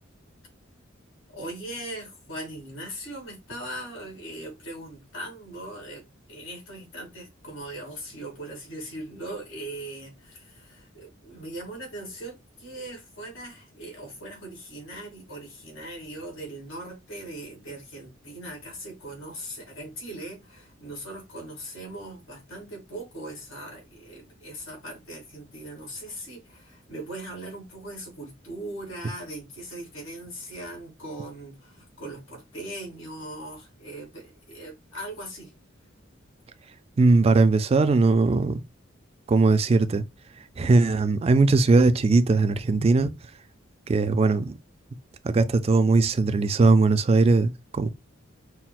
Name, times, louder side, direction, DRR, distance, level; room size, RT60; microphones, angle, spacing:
voice 1, 1.3-35.5, right 1 dB, 85° left, 2.2 m, -40 dB
voice 2, 37.0-38.6 39.3-40.0 40.6-43.1 43.9-44.6 45.2-47.9, right 3 dB, 30° right, 0.3 m, -20 dB
5.6 x 2.2 x 2.2 m
head